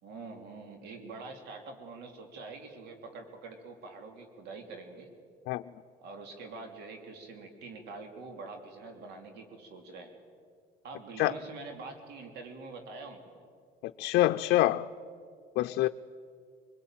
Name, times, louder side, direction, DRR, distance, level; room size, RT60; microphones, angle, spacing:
voice 1, 0.0-5.1 6.0-10.2 10.8-13.5, right 3 dB, 80° right, 3.0 m, -45 dB
voice 2, 14.0-14.9 15.6-15.9, left 15 dB, 85° left, 0.6 m, -25 dB
25.0 x 20.5 x 9.0 m
cardioid pair, 110°, 17 cm